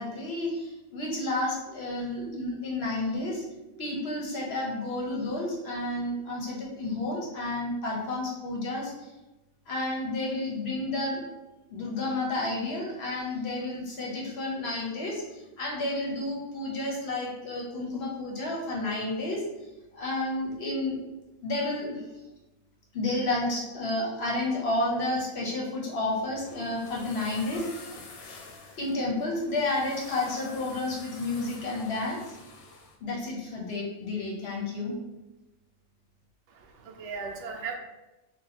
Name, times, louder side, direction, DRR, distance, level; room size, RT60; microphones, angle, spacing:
voice 1, 0.0-3.4 3.8-9.1 9.7-11.2 11.7-19.4 19.9-21.0 21.4-22.0 22.9-27.9 28.8-32.4 33.0-34.9, left 2 dB, 60° left, -3 dB, 0.8 m, -31 dB
sound 1, 26.1-33.0, left 3 dB, 85° left, 1.0 m, -47 dB
voice 2, 36.5-37.8, right 5 dB, 70° right, 1 dB, 0.8 m, -37 dB
2.6 x 2.2 x 4.0 m, 1.0 s
omnidirectional pair, 1.4 m